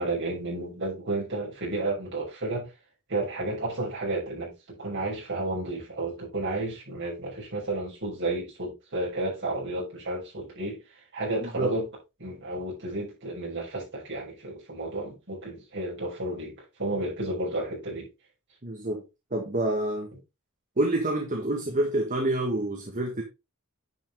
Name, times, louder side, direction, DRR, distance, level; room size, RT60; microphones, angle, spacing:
voice 1, 0.0-2.7 3.1-10.8 11.1-11.9 12.2-18.1, right 2 dB, 55° right, 6.3 m, -32 dB
voice 2, 11.4-11.8 18.6-19.0 19.3-20.1 20.8-23.2, right 1 dB, 40° right, 1.7 m, -27 dB
10.0 x 5.8 x 3.7 m
head